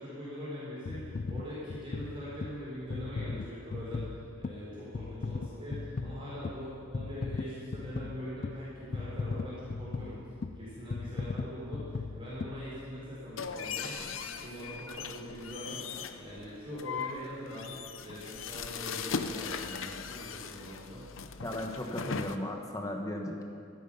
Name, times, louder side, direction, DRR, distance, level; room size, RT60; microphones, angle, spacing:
voice 1, 0.0-10.2 10.6-15.9 16.2-21.1, equal, 25° right, -8 dB, 4.0 m, -42 dB
sound 1, 0.9-13.3 13.8-13.9, left 4 dB, 40° left, 0.4 m, -39 dB
sound 2, 13.4-22.4, left 5 dB, 70° left, 0.7 m, -39 dB
voice 2, 21.4-23.4, left 1 dB, 15° left, 2 dB, 1.1 m, -36 dB
14.5 x 14.0 x 5.6 m, 2.4 s
head